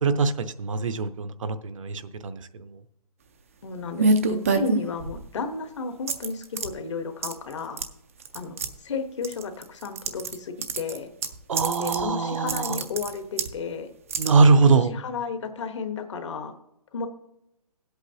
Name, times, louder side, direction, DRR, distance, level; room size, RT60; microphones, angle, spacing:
voice 1, 0.0-2.7 11.5-12.8 14.2-14.9, right 4 dB, 55° right, 11 dB, 0.7 m, -22 dB
voice 2, 3.6-7.8 8.3-11.1 11.8-13.9 14.6-16.5 16.9-17.1, left 5 dB, 50° left, 7 dB, 1.1 m, -33 dB
sound 1, 4.0-5.3 6.1-6.7 7.2-7.5 7.8-7.9 8.2-8.7 9.2-10.4 10.6-12.0 12.3-13.5 14.1-14.3, right 3 dB, 20° right, 0.4 m, -26 dB
16.5 x 8.1 x 2.7 m, 0.84 s
hypercardioid pair, 170°, 20 cm